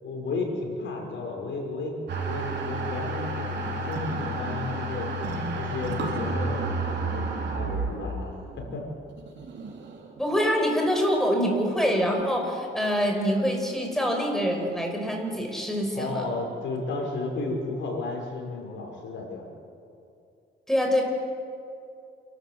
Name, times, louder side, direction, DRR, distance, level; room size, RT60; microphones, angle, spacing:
voice 1, 0.0-1.9 2.2-5.1 5.5-8.9 15.9-19.5, left 3 dB, 70° left, 1 dB, 5.6 m, -33 dB
sound 1, 2.1-10.2, right 2 dB, 60° right, 3.9 m, -31 dB
voice 2, 10.2-16.3 20.7-21.0, equal, ahead, 2 dB, 5.3 m, -25 dB
28.5 x 12.5 x 8.3 m, 2.5 s
cardioid pair, 90°, 20 cm